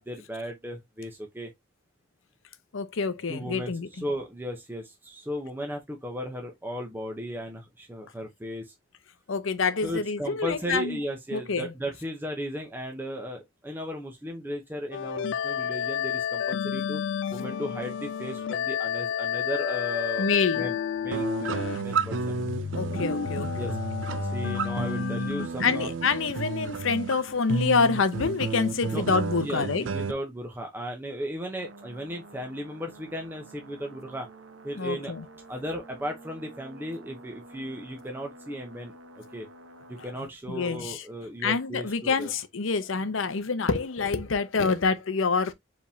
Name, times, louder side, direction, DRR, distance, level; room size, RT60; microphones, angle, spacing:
voice 1, 0.0-1.5 3.3-8.7 9.8-17.0 17.3-22.2 23.5-23.8 24.3-25.9 28.9-34.3 34.6-35.1 35.5-39.5 39.9-42.3, equal, 10° right, 0.8 m, -36 dB
voice 2, 2.7-4.1 9.3-11.0 11.3-11.7 20.2-20.7 22.8-23.7 25.6-29.8 34.7-35.3 40.5-41.0 41.4-45.5, left 4 dB, 80° left, 0.7 m, -27 dB
sound 1, 14.9-25.5, left 8 dB, 65° left, 0.3 m, -31 dB
sound 2, 21.1-30.1, right 4 dB, 70° right, 0.5 m, -32 dB
sound 3, 31.6-40.1, right 2 dB, 90° right, 0.9 m, -49 dB
4.9 x 3.5 x 2.7 m
head